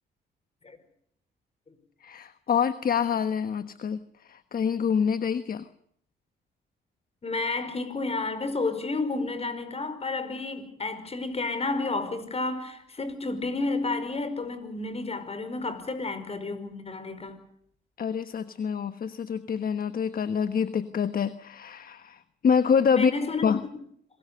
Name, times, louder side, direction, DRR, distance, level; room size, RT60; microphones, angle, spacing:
voice 1, 2.0-5.7 18.0-23.1 23.4-23.6, left 7 dB, 45° left, 1.3 m, -26 dB
voice 2, 7.2-17.4 22.9-23.5, left 3 dB, 30° left, 5.1 m, -31 dB
26.5 x 21.5 x 6.8 m
cardioid pair, 90°, 20 cm